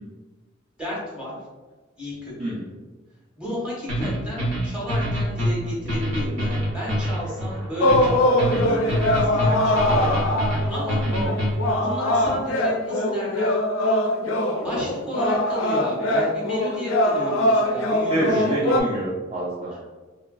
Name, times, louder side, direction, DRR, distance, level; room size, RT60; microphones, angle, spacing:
voice 1, 0.8-1.3 2.0-2.6 3.4-10.1 10.7-11.0 11.8-13.6 14.6-18.9 19.7-19.8, equal, 5° right, -8 dB, 1.0 m, -32 dB
sound 1, 3.9-11.8, equal, 70° right, 1.1 m, -25 dB
sound 2, 6.3-10.1, left 1 dB, 85° right, 1.3 m, -40 dB
sound 3, 7.8-18.8, left 1 dB, 75° left, 0.3 m, -22 dB
voice 2, 8.5-8.8 11.1-11.4 18.1-19.7, right 1 dB, 30° right, -7 dB, 0.4 m, -27 dB
2.9 x 2.4 x 2.3 m, 1.3 s
head